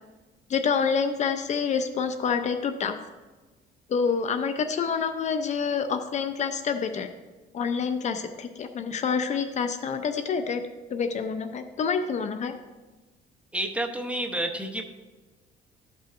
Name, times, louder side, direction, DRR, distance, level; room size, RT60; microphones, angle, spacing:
voice 1, 0.5-3.0 3.9-7.1 7.5-10.6 10.9-12.5, left 6 dB, 45° left, 8 dB, 0.5 m, -27 dB
voice 2, 13.5-14.8, right 1 dB, 5° right, 4 dB, 0.8 m, -29 dB
13.0 x 5.5 x 2.5 m, 1.2 s
cardioid pair, 110°, 17 cm